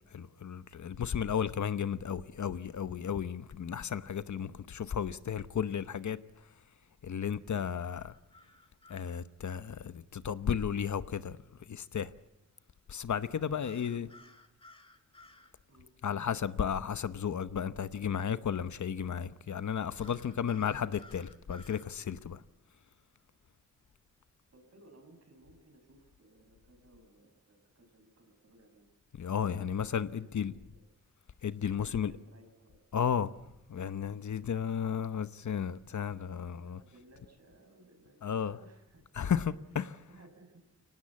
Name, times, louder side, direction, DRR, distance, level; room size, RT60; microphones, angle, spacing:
voice 1, 0.1-6.2 7.0-8.1 8.9-11.4 11.7-12.1 12.9-14.1 16.0-22.4 29.2-30.5 31.4-32.1 32.9-33.3 33.7-36.8 38.2-38.6 39.1-40.0, left 8 dB, 75° left, 0.9 m, -33 dB
sound 1, 7.8-9.2 13.6-15.5 20.0-21.9, left 2 dB, 20° left, 2.2 m, -57 dB
voice 2, 13.6-14.4 15.7-15.9 24.5-28.8 29.6-29.9 30.2-30.8 31.6-32.8 36.4-39.4 40.1-40.6, right 2 dB, 55° right, 6.1 m, -60 dB
24.5 x 18.5 x 8.6 m
wide cardioid pair, 95°, 29 cm